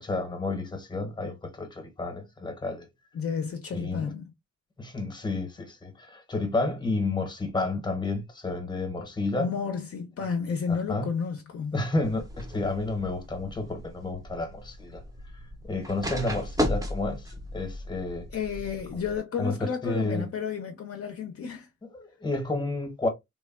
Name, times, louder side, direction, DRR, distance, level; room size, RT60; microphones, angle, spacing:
voice 1, 0.0-2.9 3.7-4.1 4.8-9.5 10.7-11.1 11.7-15.0 15.3-18.3 18.9-19.0 19.4-20.3 21.9-23.1, left 2 dB, 15° left, 0.7 m, -31 dB
voice 2, 3.1-4.3 9.4-11.8 18.3-21.7, left 6 dB, 55° left, 0.5 m, -31 dB
sound 1, 12.0-19.2, left 1 dB, 10° right, 0.5 m, -35 dB
3.2 x 2.1 x 2.3 m
wide cardioid pair, 140°, 29 cm